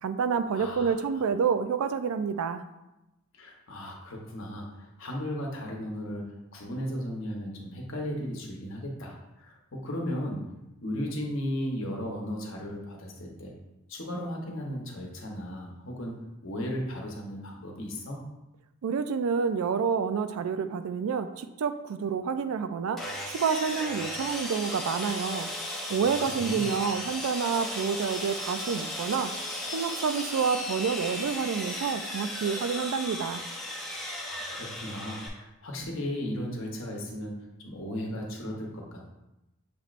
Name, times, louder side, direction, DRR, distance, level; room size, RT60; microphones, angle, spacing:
voice 1, 0.0-2.6 18.8-25.5 25.9-29.3 29.7-33.4, right 6 dB, 80° right, 10 dB, 0.3 m, -28 dB
voice 2, 0.5-0.9 3.3-6.3 6.5-10.5 10.8-13.5 13.9-18.2 25.9-26.6 34.2-37.4 37.6-39.1, equal, 60° left, 0 dB, 0.9 m, -36 dB
Sawing, 23.0-35.3, left 1 dB, ahead, 0.5 m, -36 dB
6.8 x 3.0 x 2.5 m, 0.94 s
head